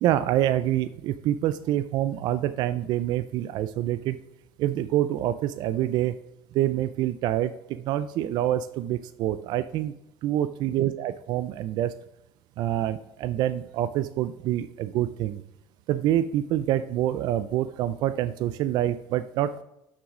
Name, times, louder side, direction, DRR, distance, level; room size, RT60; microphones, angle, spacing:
voice 1, 0.0-4.2 4.6-6.1 6.5-9.9 10.2-11.9 12.6-15.4 15.9-19.6, right 12 dB, 55° right, 12 dB, 0.4 m, -26 dB
6.3 x 6.2 x 4.9 m, 0.85 s
cardioid pair, 140°, 8 cm